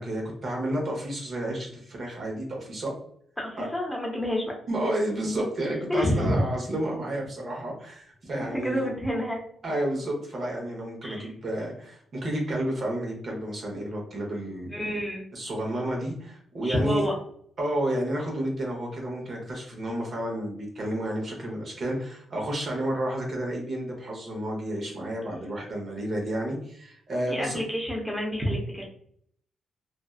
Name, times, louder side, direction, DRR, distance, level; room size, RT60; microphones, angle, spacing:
voice 1, 0.0-2.9 3.6-3.7 4.7-8.9 9.6-14.7 15.3-17.1 17.6-27.6, right 1 dB, 50° right, -1 dB, 0.9 m, -31 dB
voice 2, 3.4-4.5 5.9-6.3 8.3-8.4 8.6-9.4 11.0-11.3 14.7-15.2 16.6-17.2 27.3-28.8, equal, 10° left, -1 dB, 0.7 m, -28 dB
2.6 x 2.3 x 2.3 m, 0.63 s
cardioid pair, 75°, 0 cm